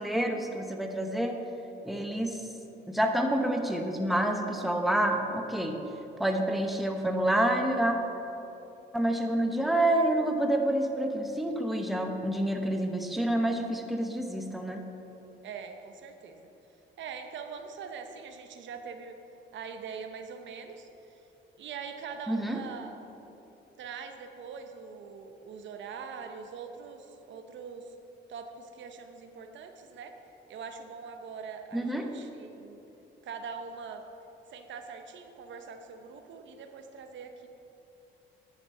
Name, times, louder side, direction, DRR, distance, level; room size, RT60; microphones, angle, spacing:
voice 1, 0.0-1.4 1.8-2.4 2.9-5.8 6.2-8.0 8.9-14.9 22.3-22.6 31.7-32.1, right 1 dB, ahead, 3 dB, 0.9 m, -28 dB
voice 2, 15.4-16.5 17.0-19.2 19.5-21.2 21.6-22.9 23.8-27.9 28.3-30.2 30.5-32.8 33.2-34.0 34.5-37.5, right 6 dB, 70° right, 6 dB, 0.8 m, -43 dB
9.8 x 5.9 x 5.4 m, 3.0 s
cardioid pair, 90°, 20 cm